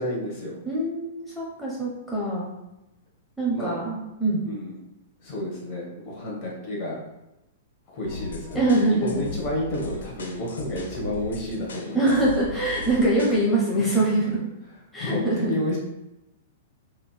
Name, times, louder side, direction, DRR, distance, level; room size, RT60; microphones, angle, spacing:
voice 1, 0.0-0.6 3.5-3.8 4.4-4.8 5.2-7.0 7.9-8.6 8.9-12.1 13.8-14.0 15.0-15.8, left 1 dB, 40° left, -4 dB, 1.2 m, -30 dB
voice 2, 0.7-2.5 3.4-4.4 8.5-9.3 11.9-14.5 14.9-15.5, right 2 dB, 5° left, -7 dB, 0.8 m, -23 dB
sound 1, 8.0-13.4, left 3 dB, 70° left, 0.6 m, -38 dB
3.8 x 2.8 x 2.2 m, 0.92 s
figure-of-eight pair, 105°, 0 cm